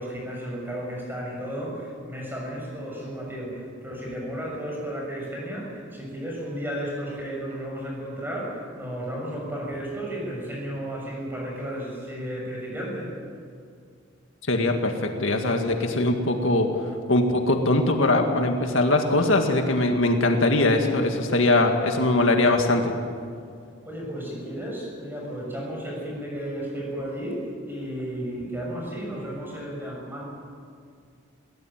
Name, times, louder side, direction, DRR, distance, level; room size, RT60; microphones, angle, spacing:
voice 1, 0.0-13.1 23.8-30.2, equal, 10° right, -2 dB, 6.7 m, -33 dB
voice 2, 14.5-16.7 17.1-23.0, left 2 dB, 75° left, 4 dB, 2.0 m, -21 dB
21.5 x 17.5 x 9.0 m, 2.2 s
head